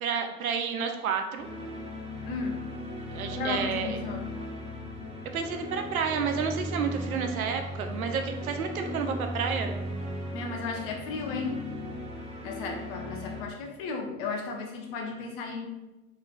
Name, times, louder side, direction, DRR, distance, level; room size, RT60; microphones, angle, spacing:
voice 1, 0.0-1.5 3.1-4.0 5.3-9.7, right 6 dB, 70° right, 6 dB, 0.5 m, -30 dB
sound 1, 1.4-13.4, equal, 15° right, 0.4 m, -37 dB
voice 2, 2.2-2.6 3.4-4.2 10.3-11.6 12.4-15.7, left 4 dB, 40° left, 2 dB, 0.6 m, -34 dB
3.2 x 2.9 x 2.3 m, 1.1 s
figure-of-eight pair, 85°, 44 cm